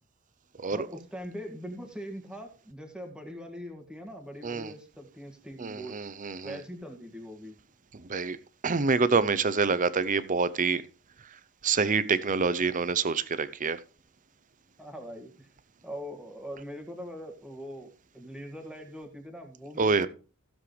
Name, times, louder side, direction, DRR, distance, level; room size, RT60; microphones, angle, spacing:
voice 1, 0.7-6.1 6.4-7.6 14.8-15.5 15.8-17.9 18.1-20.1, equal, 5° right, 2.0 m, -42 dB
voice 2, 5.6-6.6 8.1-8.4 8.6-10.8 11.6-13.8 19.8-20.1, right 4 dB, 35° right, 0.7 m, -26 dB
16.0 x 7.4 x 3.3 m
head